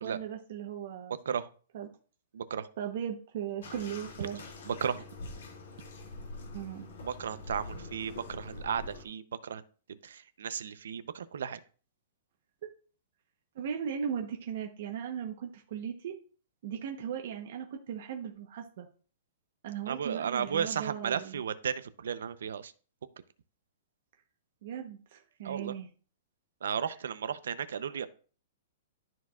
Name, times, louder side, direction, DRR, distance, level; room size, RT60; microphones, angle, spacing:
voice 1, 0.0-1.2 1.7-1.9 2.8-4.4 6.5-6.9 13.5-16.2 16.6-18.9 19.6-21.4 24.6-25.9, right 8 dB, 45° right, 2 dB, 0.9 m, -37 dB
voice 2, 2.3-2.7 4.7-5.0 7.1-9.6 9.9-11.6 19.9-22.7 25.4-25.7 26.6-28.1, right 7 dB, 90° right, 13 dB, 0.6 m, -34 dB
Bathtub (filling or washing), 3.6-9.0, left 2 dB, 70° left, 2.4 m, -45 dB
12.5 x 4.6 x 2.4 m, 0.40 s
hypercardioid pair, 175°, 0 cm